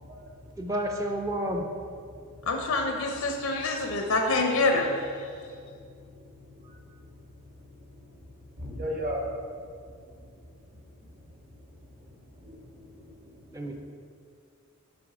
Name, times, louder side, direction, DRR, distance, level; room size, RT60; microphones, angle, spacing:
voice 1, 0.6-1.6 13.5-13.8, right 1 dB, 15° right, 2 dB, 0.4 m, -30 dB
voice 2, 2.5-4.9, left 3 dB, 90° left, 3 dB, 0.6 m, -26 dB
voice 3, 8.6-9.3 12.4-13.0 13.6-13.7, equal, 45° right, -2 dB, 1.2 m, -35 dB
6.9 x 3.6 x 4.9 m, 2.2 s
head